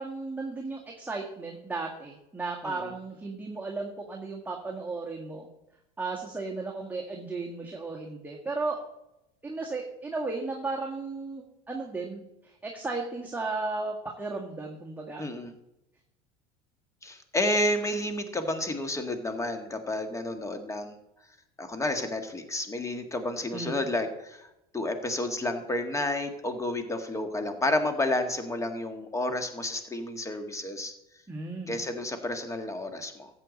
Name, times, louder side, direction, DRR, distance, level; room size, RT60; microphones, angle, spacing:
voice 1, 0.0-5.5 6.0-8.8 9.4-15.3 23.5-23.8 31.3-31.8, right 3 dB, 10° right, -1 dB, 1.7 m, -35 dB
voice 2, 2.6-2.9 15.2-15.5 17.0-21.0 21.6-24.5 24.7-30.9 31.7-33.3, left 1 dB, 15° left, 7 dB, 1.8 m, -30 dB
13.5 x 7.9 x 4.1 m, 0.88 s
supercardioid pair, 100°, 19 cm